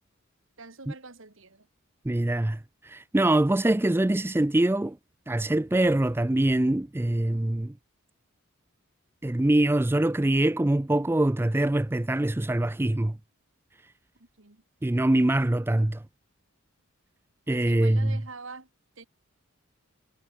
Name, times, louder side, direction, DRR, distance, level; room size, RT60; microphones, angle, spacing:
voice 1, 0.6-1.7 14.2-14.6 17.5-18.7 19.0-19.1, right 3 dB, 60° right, 2.0 m, -45 dB
voice 2, 2.1-5.0 5.3-7.7 9.2-13.2 14.8-16.0 17.5-18.2, right 1 dB, 10° right, 0.4 m, -24 dB
head